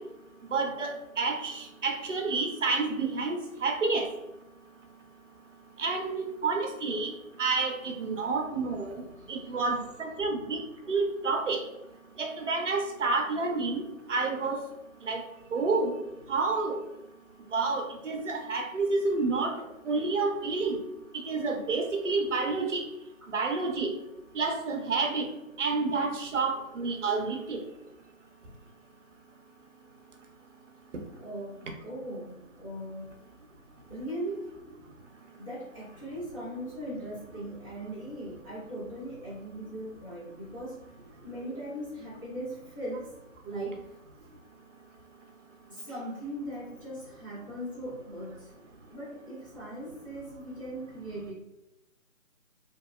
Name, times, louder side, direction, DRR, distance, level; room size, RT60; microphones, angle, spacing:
voice 1, 0.5-4.1 5.8-7.1 7.4-8.9 9.3-10.6 10.9-11.6 12.2-14.6 15.0-15.2 15.5-15.9 16.3-16.8 17.5-19.5 19.9-20.8 21.3-22.9 23.3-23.9 24.3-25.3 25.6-27.6, right 3 dB, 60° right, 3 dB, 0.6 m, -29 dB
voice 2, 9.0-9.3 23.2-23.3 31.2-31.6 31.8-33.2 33.9-34.5 35.4-40.8 41.2-43.1 43.4-43.8 45.7-48.5 48.9-51.3, right 1 dB, 25° left, -10 dB, 0.6 m, -39 dB
2.8 x 2.0 x 2.2 m, 0.90 s
figure-of-eight pair, 160°, 41 cm